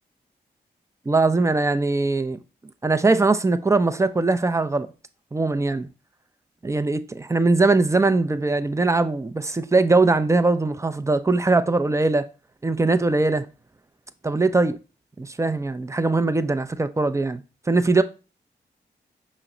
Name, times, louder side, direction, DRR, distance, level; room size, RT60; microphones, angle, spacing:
voice 1, 1.1-2.4 2.8-4.9 5.3-5.9 6.6-12.3 12.6-13.5 14.2-14.8 15.2-17.4 17.7-18.0, right 3 dB, 15° right, 0.4 m, -21 dB
5.6 x 2.1 x 3.7 m
supercardioid pair, 40°, 19 cm